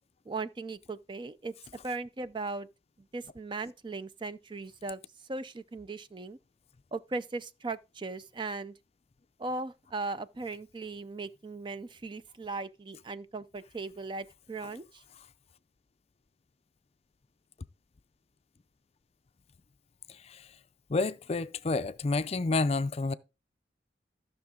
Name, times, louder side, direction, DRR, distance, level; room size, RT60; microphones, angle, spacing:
voice 1, 0.3-1.5 1.8-2.7 3.1-5.0 5.3-6.4 6.9-8.7 9.4-15.0, right 3 dB, 25° right, 0.4 m, -38 dB
voice 2, 20.9-23.1, left 3 dB, 35° left, 0.5 m, -29 dB
13.5 x 6.2 x 3.7 m
head